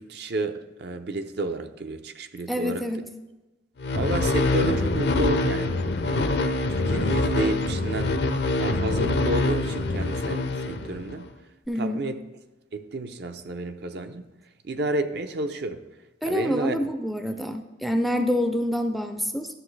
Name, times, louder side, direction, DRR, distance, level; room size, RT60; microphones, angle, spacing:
voice 1, 0.0-2.8 3.9-5.8 6.0-8.1 8.6-11.3 11.8-12.2 12.7-14.3 14.6-15.8 16.2-16.9, right 2 dB, 65° right, 8 dB, 0.5 m, -31 dB
voice 2, 2.5-3.0 11.7-12.0 16.2-19.5, equal, ahead, 7 dB, 0.4 m, -27 dB
sound 1, 3.8-11.2, left 2 dB, 65° left, 0.5 m, -25 dB
11.5 x 6.7 x 3.2 m, 1.1 s
head